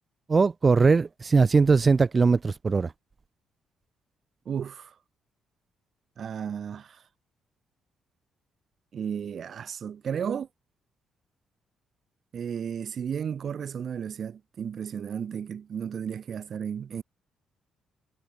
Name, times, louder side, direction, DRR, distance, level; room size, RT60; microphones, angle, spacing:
voice 1, 0.3-2.9, right 4 dB, 30° right, 2.4 m, -20 dB
voice 2, 4.5-5.0 6.2-7.0 8.9-10.5 12.3-17.0, right 7 dB, 55° right, 3.9 m, -33 dB
cardioid pair, 90°, 0 cm